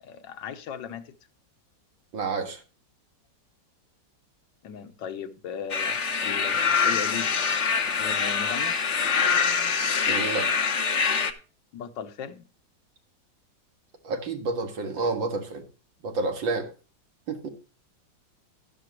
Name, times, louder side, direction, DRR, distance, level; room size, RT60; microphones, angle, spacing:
voice 1, 0.0-1.1 4.6-7.3 8.0-8.8 11.7-12.5, left 8 dB, 75° left, 1.5 m, -37 dB
voice 2, 2.1-2.6 10.1-10.5 14.0-15.6 16.0-16.7 17.3-17.5, right 3 dB, 90° right, 2.5 m, -29 dB
sound 1, 5.7-11.3, left 6 dB, 50° left, 0.9 m, -25 dB
12.0 x 11.0 x 3.0 m
omnidirectional pair, 2.0 m